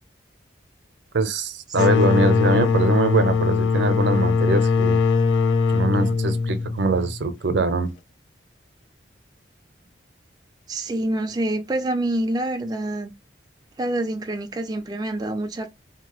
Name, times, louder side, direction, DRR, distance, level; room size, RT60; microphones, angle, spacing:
voice 1, 1.1-5.0 5.7-7.9, right 3 dB, 70° right, 0.5 m, -23 dB
sound 1, 1.7-7.2, left 5 dB, 90° left, 0.5 m, -20 dB
voice 2, 10.7-13.1 13.8-15.7, right 1 dB, 20° right, 0.3 m, -26 dB
2.7 x 2.2 x 2.9 m
head